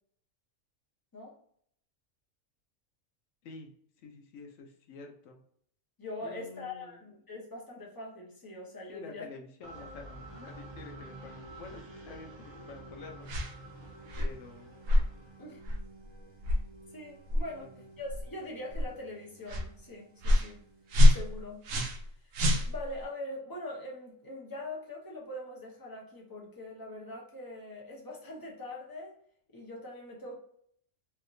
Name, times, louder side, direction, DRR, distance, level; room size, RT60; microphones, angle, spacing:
voice 1, 4.0-5.4 6.2-7.0 8.9-13.3 14.2-14.8, left 3 dB, 70° left, 3 dB, 1.0 m, -48 dB
voice 2, 6.0-9.3 9.7-9.8 15.4-15.6 16.9-20.6 21.1-21.9 22.2-22.3 22.7-29.2 29.5-30.4, left 1 dB, 20° left, -3 dB, 0.8 m, -43 dB
sound 1, 9.6-21.4, right 2 dB, 30° right, 0.5 m, -50 dB
sound 2, 13.3-13.5 14.1-14.3 14.9-15.1 15.6-15.8 16.4-16.6 17.3-17.4 18.1-18.2 18.7-18.9 19.5-19.7 20.2-20.5 20.9-22.1 22.3-23.0, left 1 dB, 80° right, 1.1 m, -24 dB
3.3 x 2.8 x 2.4 m, 0.66 s
omnidirectional pair, 1.3 m